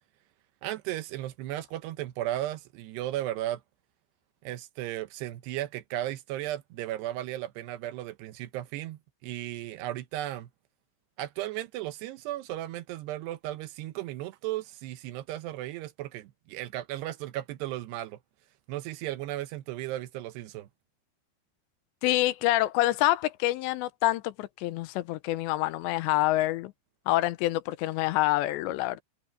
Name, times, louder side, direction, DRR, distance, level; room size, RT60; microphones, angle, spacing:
voice 1, 0.6-3.6 4.4-10.5 11.2-18.2 18.7-20.7, right 14 dB, 75° right, 2.7 m, -35 dB
voice 2, 22.0-26.7 27.1-29.0, left 16 dB, 85° left, 2.9 m, -26 dB
omnidirectional pair, 5.2 m